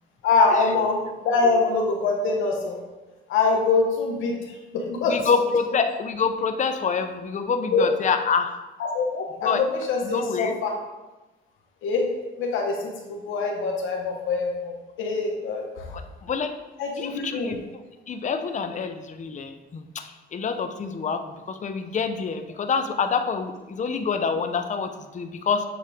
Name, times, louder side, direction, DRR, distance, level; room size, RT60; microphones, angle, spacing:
voice 1, 0.2-2.8 3.3-5.2 7.7-7.9 8.8-10.8 11.8-12.0 12.4-15.9 16.8-17.5, left 4 dB, 85° left, 1 dB, 1.1 m, -24 dB
voice 2, 5.1-8.6 9.4-9.6 10.0-10.5 15.9-16.5 17.0-17.6 18.1-25.6, left 5 dB, 40° left, 7 dB, 0.6 m, -26 dB
8.4 x 3.2 x 3.5 m, 1.1 s
cardioid pair, 90°, 20 cm